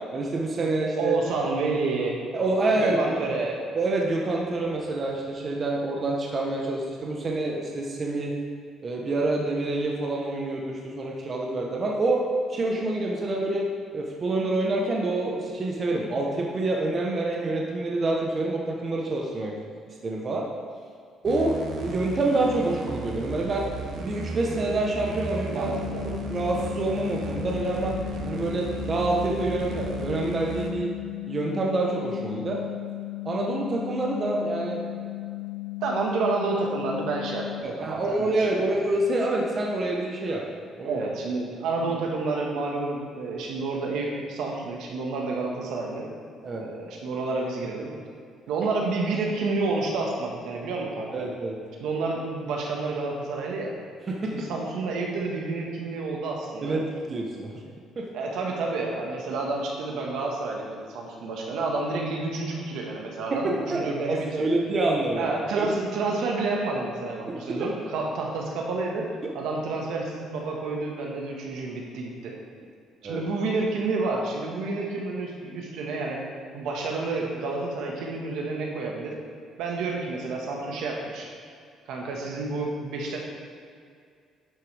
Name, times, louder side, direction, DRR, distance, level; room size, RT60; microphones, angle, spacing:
voice 1, 0.1-1.1 2.3-3.2 3.7-8.3 8.8-12.2 12.5-13.7 13.9-19.5 20.0-20.5 21.2-21.6 21.8-23.7 24.0-25.7 26.0-28.0 28.3-30.9 31.3-32.6 33.2-34.8 37.6-40.4 40.8-41.0 46.4-46.6 51.1-51.6 54.1-54.5 56.6-57.6 58.0-58.1 63.3-65.3 65.6-65.7 67.3-67.6 69.2-69.3 73.0-73.2, right 2 dB, 30° right, -1 dB, 1.0 m, -27 dB
voice 2, 1.0-2.2 2.7-3.6 25.5-26.0 35.8-38.6 40.8-46.1 46.6-47.9 48.5-51.2 51.8-53.7 54.3-56.8 58.1-64.5 65.2-69.1 69.3-72.3 73.0-76.2 76.5-79.1 79.6-81.3 81.9-83.2, right 3 dB, 80° right, -1 dB, 1.5 m, -29 dB
sound 1, 21.2-30.7, right 3 dB, 60° right, 1.0 m, -36 dB
sound 2, 25.6-37.6, left 25 dB, 50° left, 0.5 m, -36 dB
11.0 x 6.6 x 3.4 m, 2.3 s
cardioid pair, 140°, 0 cm